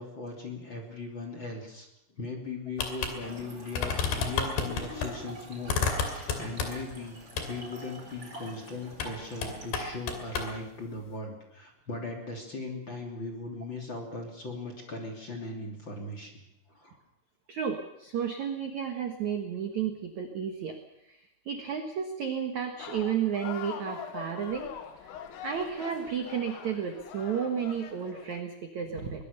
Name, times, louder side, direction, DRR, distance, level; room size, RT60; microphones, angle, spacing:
voice 1, 0.0-7.2 7.5-16.4 16.7-17.0, left 2 dB, 30° left, 2 dB, 2.9 m, -39 dB
sound 1, 2.8-3.1 3.4-3.5 3.8-5.1 5.7-6.9 7.4-7.5 8.9-9.2 9.4-10.5, left 5 dB, 60° left, 4.3 m, -30 dB
Trickle dribble / Fill (with liquid), 3.2-9.8, right 1 dB, 25° right, 4.6 m, -46 dB
voice 2, 17.5-20.8 21.1-24.7 25.0-25.1 25.4-29.2, right 7 dB, 75° right, 4 dB, 1.7 m, -32 dB
sound 2, 22.8-28.4, left 8 dB, 85° left, 4.2 m, -43 dB
22.5 x 20.0 x 6.9 m, 0.84 s
omnidirectional pair, 5.8 m